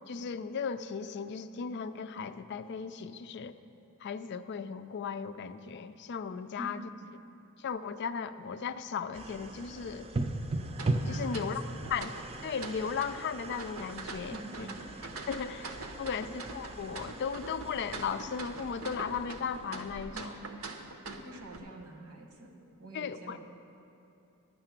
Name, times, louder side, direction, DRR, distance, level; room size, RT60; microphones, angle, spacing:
voice 1, 0.1-3.5 4.0-6.9 7.6-10.1 11.1-11.6 11.9-12.1 12.4-14.7 15.2-20.4 22.9-23.4, left 6 dB, 50° left, 11 dB, 0.4 m, -36 dB
voice 2, 6.6-6.9 11.0-11.8 14.3-14.9 20.1-20.8 21.0-23.4, right 2 dB, 85° right, 3 dB, 1.4 m, -46 dB
sound 1, 9.1-20.2, right 2 dB, 25° right, 0.5 m, -39 dB
sound 2, 10.7-21.6, right 3 dB, 65° right, 0.8 m, -44 dB
12.0 x 6.7 x 7.3 m, 2.7 s
head